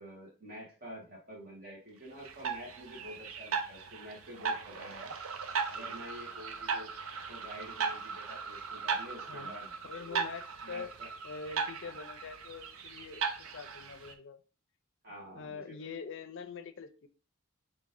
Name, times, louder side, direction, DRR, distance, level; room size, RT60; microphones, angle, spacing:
voice 1, 0.0-5.1 5.7-10.2 10.6-11.1 11.8-12.0 15.0-15.8, equal, 45° right, -3 dB, 2.3 m, -48 dB
sound 1, 2.2-14.1, right 5 dB, 80° right, 0.6 m, -37 dB
voice 2, 9.8-10.9 11.2-14.4 15.3-17.1, left 5 dB, 60° left, 10 dB, 0.5 m, -44 dB
4.1 x 3.3 x 3.7 m, 0.36 s
head